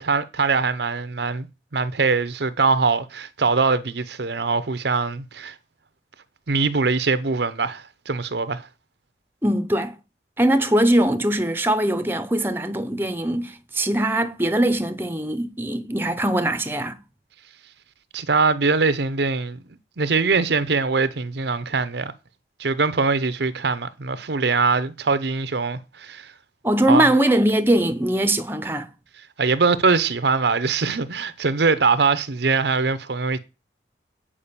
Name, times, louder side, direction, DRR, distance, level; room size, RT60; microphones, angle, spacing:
voice 1, 0.0-1.5 1.7-5.5 6.5-8.7 18.1-19.6 20.0-22.1 22.6-26.3 26.9-27.1 29.4-33.4, right 4 dB, 65° right, 0.7 m, -22 dB
voice 2, 9.4-9.9 10.4-17.0 26.6-28.9, right 1 dB, 10° right, 0.8 m, -21 dB
8.7 x 5.0 x 6.8 m
head